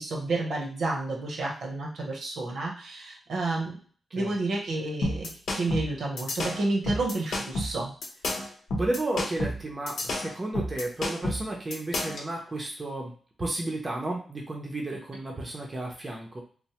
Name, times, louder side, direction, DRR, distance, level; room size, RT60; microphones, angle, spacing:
voice 1, 0.0-3.8 4.1-7.9, right 2 dB, 70° right, -1 dB, 0.8 m, -30 dB
sound 1, 5.0-12.3, left 1 dB, 90° left, 0.8 m, -31 dB
voice 2, 8.8-13.1 13.4-16.4, right 2 dB, 20° right, -1 dB, 0.5 m, -32 dB
3.1 x 2.0 x 2.8 m, 0.42 s
wide cardioid pair, 165°, 0 cm